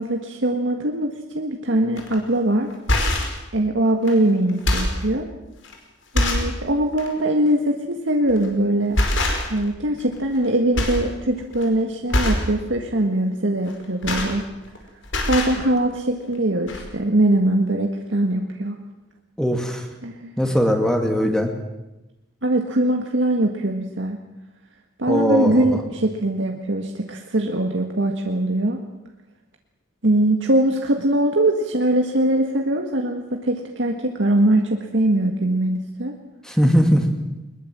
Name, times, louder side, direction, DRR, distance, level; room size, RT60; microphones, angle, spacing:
voice 1, 0.0-2.7 3.5-5.3 6.1-9.0 9.5-14.5 15.3-18.8 20.0-20.4 22.4-24.2 25.0-28.8 30.0-36.2, right 1 dB, 75° right, 2 dB, 1.8 m, -21 dB
sound 1, 2.0-2.2 2.7-3.4 4.1-4.2 4.5-5.0 5.6-5.7 6.1-6.5 6.9-7.1 8.3-8.5 8.9-9.7 10.0-10.5 10.7-11.1 11.4-11.6 12.1-12.5 13.7-14.8 15.0-15.6 16.4-16.5 16.7-16.8, left 1 dB, 85° left, 5.2 m, -23 dB
voice 2, 19.4-19.8 20.4-21.5 25.1-25.8 36.5-37.1, equal, 5° left, 4 dB, 2.3 m, -19 dB
22.0 x 21.0 x 7.6 m, 0.97 s
head